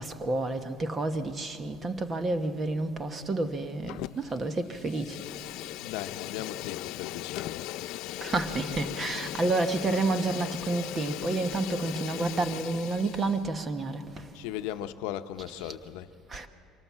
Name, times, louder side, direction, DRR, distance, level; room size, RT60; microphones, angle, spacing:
voice 1, 0.0-5.2 8.2-14.3 16.3-16.5, right 2 dB, 25° right, 1.1 m, -30 dB
Fire, 3.9-4.4 4.7-13.4, left 16 dB, 70° left, 0.4 m, -38 dB
voice 2, 5.8-7.7 14.3-16.1, left 12 dB, 90° left, 0.8 m, -37 dB
24.0 x 18.5 x 7.4 m
cardioid pair, 145°, 0 cm